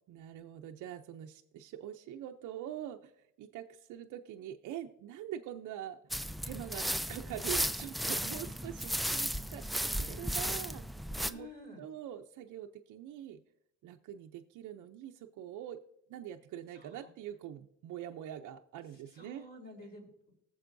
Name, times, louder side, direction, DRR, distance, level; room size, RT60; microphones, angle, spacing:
voice 1, 0.1-6.0 6.4-11.5 11.8-13.4 13.8-15.8 16.1-19.5, right 11 dB, 80° right, 4 dB, 0.6 m, -44 dB
sound 1, 6.1-11.3, equal, ahead, 0.3 m, -35 dB
voice 2, 11.2-11.8 16.8-17.1 19.1-20.3, left 1 dB, 30° left, -1 dB, 4.5 m, -50 dB
20.0 x 7.2 x 2.6 m, 0.79 s
cardioid pair, 90°, 30 cm